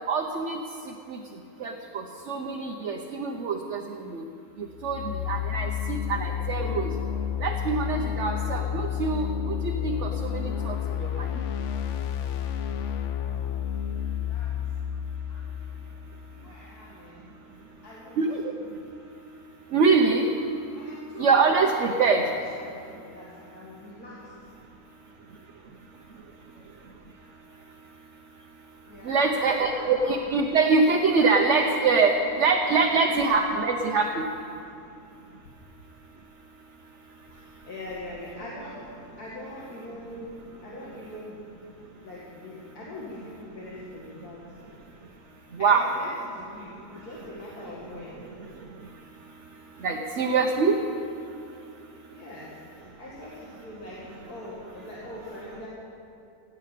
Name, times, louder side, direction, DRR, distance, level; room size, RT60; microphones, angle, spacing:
voice 1, 0.1-0.6 1.1-1.2 1.6-4.2 4.8-6.9 7.4-11.3 18.2-18.5 19.7-20.3 21.2-22.2 29.0-34.2 45.6-45.8 49.8-50.8, right 4 dB, 55° right, 2 dB, 1.1 m, -24 dB
sound 1, 4.7-16.5, left 9 dB, 60° left, 1.0 m, -31 dB
voice 2, 13.8-14.7 15.3-15.9 16.3-17.3 17.8-18.2 20.7-21.7 22.0-24.2 28.9-30.3 31.2-32.1 32.4-33.3 37.3-38.8 39.2-40.3 40.6-41.4 42.0-44.5 45.6-48.2 52.1-55.7, left 1 dB, 85° left, -6 dB, 2.6 m, -42 dB
17.0 x 8.5 x 8.3 m, 2.5 s
omnidirectional pair, 1.6 m